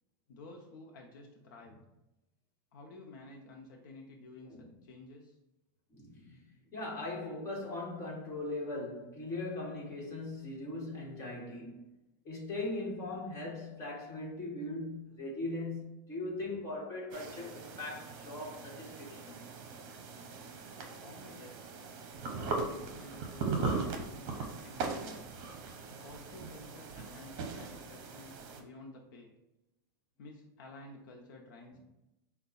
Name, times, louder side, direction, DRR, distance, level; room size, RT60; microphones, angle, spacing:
voice 1, 0.3-1.8 2.7-5.4 21.0-21.6 22.4-25.2 25.9-29.3 30.2-31.8, left 2 dB, 70° left, 0.7 m, -52 dB
voice 2, 5.9-6.5 6.7-11.8 12.2-19.5 31.7-31.8, left 2 dB, 25° left, 1.5 m, -40 dB
sound 1, 17.1-28.6, right 4 dB, 50° right, 0.8 m, -39 dB
5.4 x 2.2 x 4.0 m
supercardioid pair, 150°, 11 cm